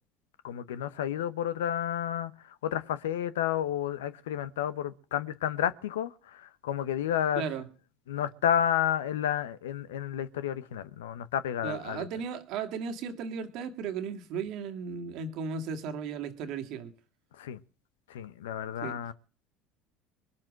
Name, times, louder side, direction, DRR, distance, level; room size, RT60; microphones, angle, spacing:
voice 1, 0.4-7.5 8.1-12.1 17.3-17.6 18.1-19.1, left 10 dB, 75° left, 0.8 m, -31 dB
voice 2, 7.4-7.7 11.6-16.9 18.8-19.0, right 6 dB, 60° right, 1.8 m, -35 dB
22.0 x 7.5 x 6.3 m
hypercardioid pair, 70°, 0 cm